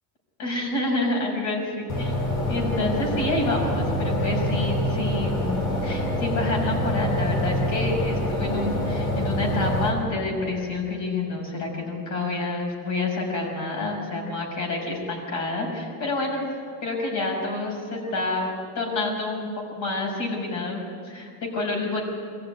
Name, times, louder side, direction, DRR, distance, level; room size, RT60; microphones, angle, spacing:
voice 1, 0.4-2.2 2.5-16.4 16.8-22.0, left 2 dB, 50° left, 1 dB, 6.3 m, -28 dB
sound 1, 1.9-9.9, left 1 dB, 70° left, 6.8 m, -26 dB
24.0 x 14.5 x 9.5 m, 2.2 s
cardioid pair, 165°, 36 cm